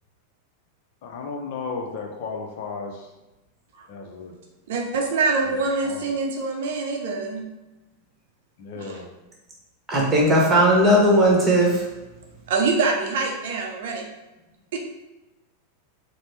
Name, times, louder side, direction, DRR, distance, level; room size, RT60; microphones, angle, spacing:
voice 1, 1.0-3.1 3.9-4.3 5.5-5.6 5.8-6.1 8.6-9.1, left 4 dB, 50° left, 2 dB, 0.6 m, -34 dB
voice 2, 4.7-7.5 8.7-9.0 12.5-14.0 14.7-14.8, right 4 dB, 55° right, 1 dB, 0.6 m, -25 dB
voice 3, 9.9-11.9, equal, 15° right, -3 dB, 1.1 m, -17 dB
4.0 x 2.1 x 3.3 m, 1.0 s
figure-of-eight pair, 90°, 0 cm